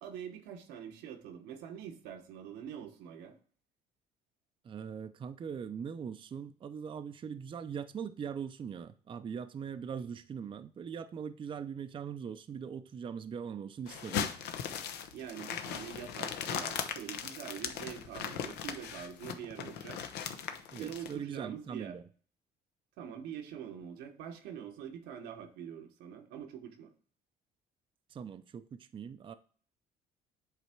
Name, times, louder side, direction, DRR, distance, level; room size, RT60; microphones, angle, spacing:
voice 1, 0.0-3.4 15.1-20.0 20.8-22.0 23.0-26.9, right 8 dB, 90° right, 1.1 m, -45 dB
voice 2, 4.6-14.3 20.7-22.0 28.1-29.3, right 7 dB, 30° right, 0.4 m, -41 dB
sound 1, 13.9-21.1, left 8 dB, 85° left, 0.8 m, -38 dB
8.0 x 3.4 x 4.4 m
cardioid pair, 110°, 17 cm